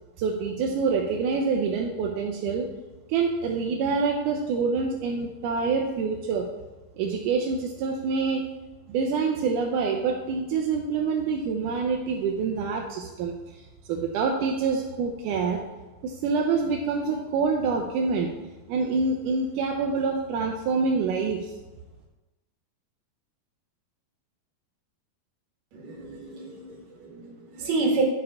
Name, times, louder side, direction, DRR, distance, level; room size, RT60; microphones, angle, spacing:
voice 1, 0.2-2.7 3.1-6.5 7.0-8.5 8.9-15.6 16.0-18.3 18.7-21.5, right 4 dB, 80° right, 1 dB, 2.1 m, -26 dB
voice 2, 25.7-28.0, right 3 dB, 60° right, -1 dB, 2.9 m, -29 dB
10.5 x 5.0 x 4.7 m, 1.2 s
omnidirectional pair, 3.9 m